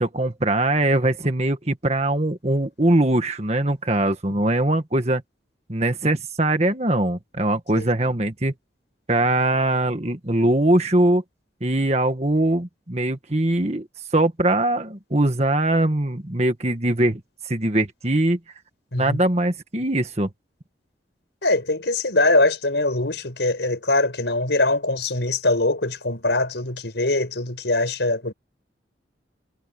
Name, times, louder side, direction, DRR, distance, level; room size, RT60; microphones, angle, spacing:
voice 1, 0.0-5.2 5.7-8.5 9.1-11.2 11.6-13.9 14.1-17.2 17.5-18.4 19.0-20.3, right 1 dB, 35° right, 1.7 m, -21 dB
voice 2, 21.4-28.3, left 2 dB, 75° left, 4.8 m, -22 dB
head